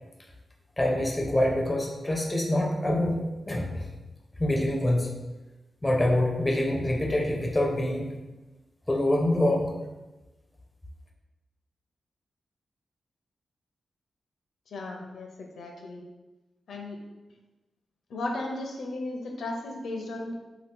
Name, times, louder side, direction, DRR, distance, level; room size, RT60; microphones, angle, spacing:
voice 1, 0.8-3.2 3.5-3.8 4.4-5.1 5.8-8.1 8.9-9.7, left 1 dB, 15° left, -1 dB, 0.4 m, -25 dB
voice 2, 14.7-16.0 16.7-17.0 18.1-20.3, left 2 dB, 75° left, 1 dB, 0.5 m, -35 dB
2.7 x 2.3 x 3.5 m, 1.1 s
wide cardioid pair, 140°, 0 cm